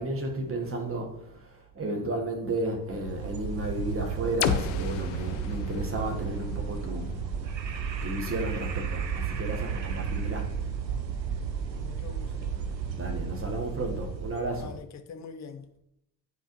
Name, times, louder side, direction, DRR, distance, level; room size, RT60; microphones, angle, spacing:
voice 1, 0.0-7.1 8.0-10.5 12.9-14.7, right 1 dB, 25° right, 1.5 m, -33 dB
sound 1, 2.9-14.8, right 6 dB, 85° right, 0.6 m, -33 dB
sound 2, 4.4-8.3, left 9 dB, 65° left, 0.6 m, -34 dB
voice 2, 11.3-12.5 14.5-15.7, left 5 dB, 35° left, 0.8 m, -45 dB
8.7 x 4.7 x 3.1 m
figure-of-eight pair, 55°, 50 cm